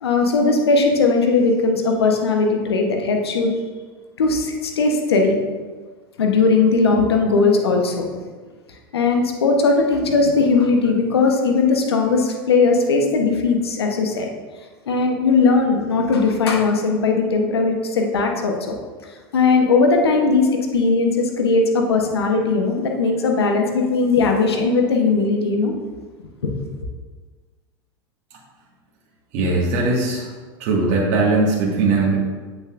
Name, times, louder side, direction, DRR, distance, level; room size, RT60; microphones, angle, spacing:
voice 1, 0.0-3.5 4.2-5.4 6.2-8.1 8.9-14.3 14.9-18.6 19.3-25.7 26.4-26.5, left 4 dB, 90° left, 2 dB, 1.0 m, -18 dB
voice 2, 29.3-30.3 30.6-32.2, right 3 dB, 55° right, -4 dB, 1.7 m, -19 dB
8.1 x 6.8 x 2.5 m, 1.4 s
hypercardioid pair, 95°, 13 cm